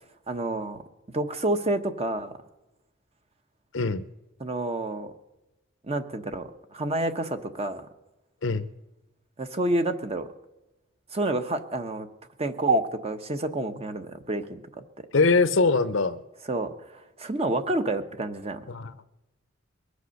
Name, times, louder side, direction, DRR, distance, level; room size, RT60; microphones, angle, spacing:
voice 1, 0.3-0.8 1.1-2.3 4.4-5.1 5.8-7.8 9.4-10.3 11.1-12.1 12.4-14.8 16.5-18.6, right 2 dB, 30° right, 8 dB, 1.0 m, -29 dB
voice 2, 15.1-16.2 18.7-19.0, left 3 dB, 65° left, 13 dB, 0.8 m, -22 dB
22.0 x 8.3 x 6.5 m, 0.99 s
head